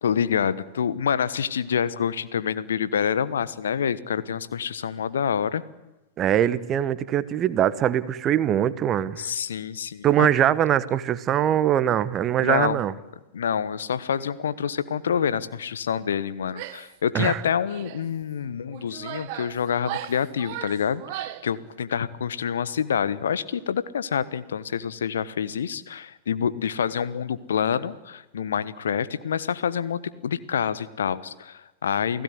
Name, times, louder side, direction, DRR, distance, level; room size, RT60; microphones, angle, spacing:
voice 1, 0.0-5.6 9.2-10.3 12.4-12.8 13.3-32.2, left 8 dB, 65° left, 16 dB, 1.2 m, -27 dB
voice 2, 6.2-9.2 10.0-12.9 17.1-17.4, right 10 dB, 30° right, 16 dB, 1.2 m, -22 dB
Female speech woman speaking / Yell, 16.5-16.9 17.2-18.1 18.7-21.5, right 15 dB, 45° right, 1.3 m, -37 dB
29.0 x 17.0 x 9.5 m, 1.1 s
figure-of-eight pair, 95°, 0 cm